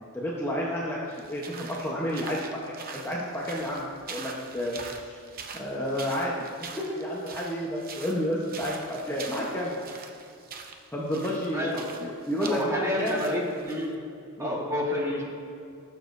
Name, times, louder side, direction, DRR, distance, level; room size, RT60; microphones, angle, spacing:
voice 1, 0.0-5.2 5.5-9.9 10.9-11.7 12.0-13.2 14.4-14.6, equal, 10° left, -5 dB, 1.0 m, -31 dB
sound 1, 1.1-13.9, right 5 dB, 40° right, 0.7 m, -43 dB
voice 2, 11.5-12.0 12.4-14.0 14.4-15.2, left 1 dB, 15° right, -3 dB, 1.6 m, -29 dB
17.5 x 7.1 x 2.6 m, 2.4 s
head